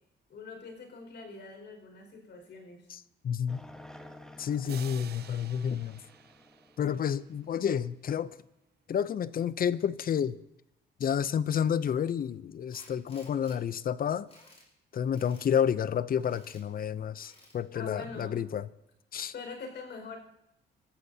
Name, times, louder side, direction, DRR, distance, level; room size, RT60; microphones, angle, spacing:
voice 1, 0.3-2.9 17.7-18.4 19.3-20.2, left 4 dB, 65° left, 5.1 m, -43 dB
voice 2, 2.9-3.6 4.4-6.0 6.8-8.4 8.9-10.4 11.0-14.3 14.9-18.7 19.1-19.3, left 8 dB, 45° left, 0.6 m, -30 dB
sound 1, 3.5-7.8, left 1 dB, 5° left, 1.2 m, -52 dB
sound 2, 4.6-7.3, right 10 dB, 55° right, 0.5 m, -50 dB
Tools, 12.7-13.6 14.0-14.7 15.1-15.5 16.2-16.6 17.1-17.6, left 2 dB, 30° left, 5.3 m, -56 dB
27.0 x 14.0 x 2.8 m
cardioid pair, 90°, 20 cm